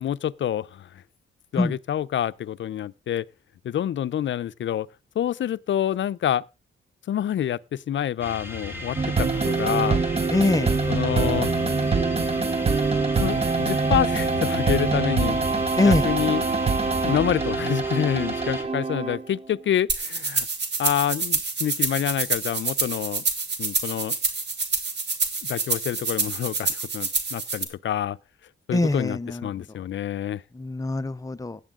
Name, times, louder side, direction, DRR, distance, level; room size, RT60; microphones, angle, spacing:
voice 1, 0.0-0.9 1.5-3.2 3.6-4.9 5.2-6.4 7.1-10.0 10.9-11.5 13.2-15.4 15.8-16.5 17.0-20.5 20.8-23.2 23.6-24.2 25.5-28.2 28.7-30.4, left 10 dB, 65° left, 0.5 m, -27 dB
sound 1, 8.2-18.6, left 3 dB, 10° right, 3.1 m, -36 dB
sound 2, 9.0-19.4, right 4 dB, 30° right, 0.7 m, -24 dB
voice 2, 10.3-10.7 15.8-16.1 28.7-29.5 30.6-31.6, left 2 dB, 15° left, 0.7 m, -23 dB
sound 3, 19.9-27.6, right 4 dB, 55° right, 2.5 m, -27 dB
16.5 x 9.9 x 3.7 m
wide cardioid pair, 125°, 21 cm